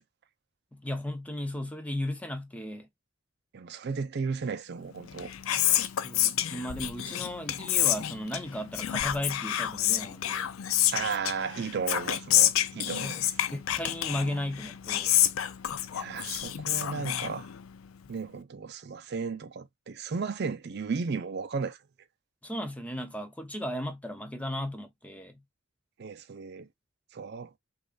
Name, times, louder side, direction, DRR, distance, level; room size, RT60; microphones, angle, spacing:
voice 1, 0.7-2.9 6.0-10.5 12.7-13.2 13.5-15.2 22.4-25.4, left 1 dB, 5° left, 0.5 m, -35 dB
voice 2, 3.5-5.3 10.9-13.3 15.9-17.5 18.1-21.8 26.0-26.7 27.1-27.5, right 5 dB, 50° right, 0.5 m, -34 dB
Whispering, 5.0-17.9, left 12 dB, 85° left, 0.4 m, -29 dB
5.2 x 2.4 x 2.3 m
head